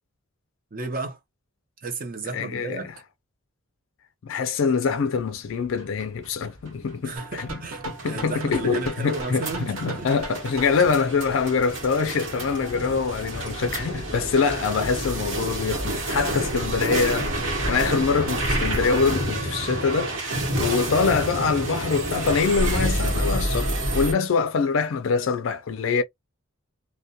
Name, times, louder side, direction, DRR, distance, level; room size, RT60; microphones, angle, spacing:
voice 1, 0.7-1.2 1.8-2.9 7.0-10.1 12.7-12.9 14.1-14.2, right 3 dB, 40° right, 0.6 m, -33 dB
voice 2, 2.3-2.9 4.2-7.6 8.0-26.0, left 5 dB, 65° left, 0.4 m, -24 dB
sound 1, 5.5-24.1, right 1 dB, 60° right, 1.0 m, -29 dB
sound 2, 7.1-10.9, right 2 dB, 90° right, 1.1 m, -37 dB
2.2 x 2.1 x 2.6 m
head